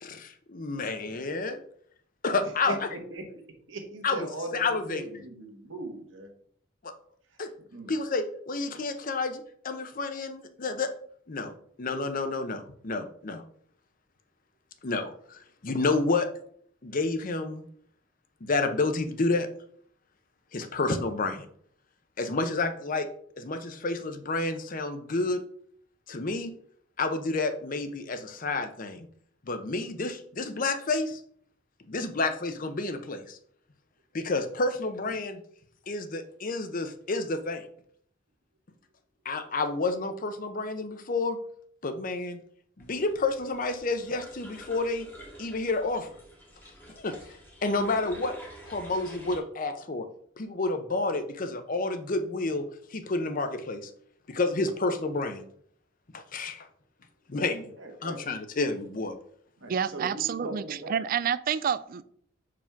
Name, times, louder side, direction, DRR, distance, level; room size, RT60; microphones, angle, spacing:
voice 1, 0.0-1.6 2.2-2.7 4.0-4.3 4.5-5.0 6.8-6.9 7.4-7.5 7.9-10.9 11.3-11.5 11.8-13.4 14.8-16.3 16.8-17.7 18.4-19.5 20.5-21.5 22.2-23.1 23.4-25.4 26.1-26.5 27.0-29.1 29.5-31.2 31.9-33.4 34.1-35.4 35.9-37.6 39.2-41.4 41.8-42.4 42.8-45.1 45.4-46.1 46.9-48.3 48.7-50.1 50.4-52.7 52.9-53.9 54.3-55.4 56.1-56.7 57.3-57.7 58.0-59.1, left 3 dB, 45° left, 8 dB, 0.7 m, -30 dB
voice 2, 2.4-3.3 3.7-6.3 7.7-7.9 35.0-35.1 57.8-58.2 59.6-60.9, right 2 dB, 90° right, 3 dB, 1.4 m, -39 dB
sound 1, 42.8-49.4, right 1 dB, 10° left, 1.8 m, -48 dB
voice 3, 59.7-60.6 60.9-62.0, right 8 dB, 45° right, 15 dB, 0.3 m, -28 dB
4.9 x 3.6 x 5.7 m, 0.62 s
head